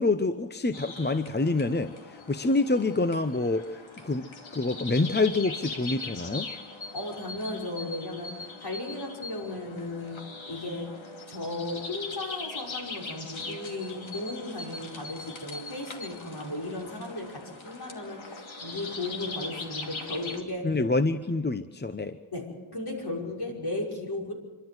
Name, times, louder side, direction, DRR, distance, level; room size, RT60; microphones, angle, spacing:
voice 1, 0.0-6.5 20.6-22.2, left 3 dB, 20° left, 11 dB, 0.8 m, -27 dB
sound 1, 0.7-20.4, left 3 dB, 70° left, 2.6 m, -41 dB
voice 2, 6.9-10.9 11.3-20.8 22.3-24.3, left 2 dB, 50° left, -1 dB, 5.8 m, -35 dB
27.0 x 12.5 x 7.9 m, 1.3 s
cardioid pair, 60°, 49 cm